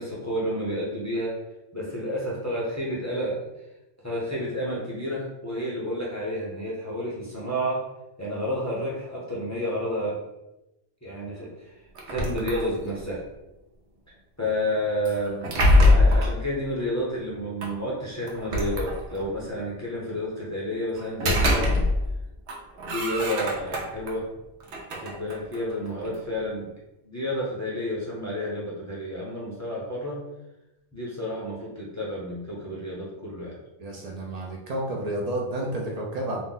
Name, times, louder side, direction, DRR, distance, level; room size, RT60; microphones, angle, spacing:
voice 1, 0.0-1.4 1.7-3.5 4.0-7.9 8.2-10.2 11.0-11.7 12.1-13.2 14.4-21.8 22.8-24.3 24.9-26.7 27.0-30.2 30.9-33.6, equal, 20° left, -5 dB, 0.4 m, -30 dB
sound 1, 12.0-13.1 15.1-16.4 17.6-17.7 18.3-19.4 21.0-22.2 22.5-24.1 24.6-26.2, left 1 dB, 85° right, 1.0 m, -23 dB
voice 2, 33.8-36.4, right 1 dB, 60° right, -1 dB, 0.4 m, -30 dB
2.5 x 2.0 x 3.7 m, 0.94 s
omnidirectional pair, 1.1 m